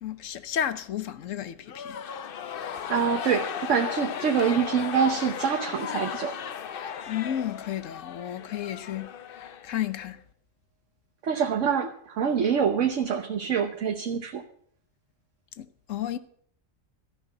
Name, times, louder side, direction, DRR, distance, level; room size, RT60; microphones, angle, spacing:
voice 1, 0.0-2.0 7.1-9.1 9.6-10.2 15.6-16.2, left 10 dB, 75° left, 1.1 m, -32 dB
sound 1, 1.6-10.1, left 8 dB, 55° left, 0.7 m, -35 dB
voice 2, 2.9-6.3 11.2-14.4, right 7 dB, 70° right, 1.3 m, -25 dB
13.5 x 5.8 x 9.4 m
omnidirectional pair, 1.4 m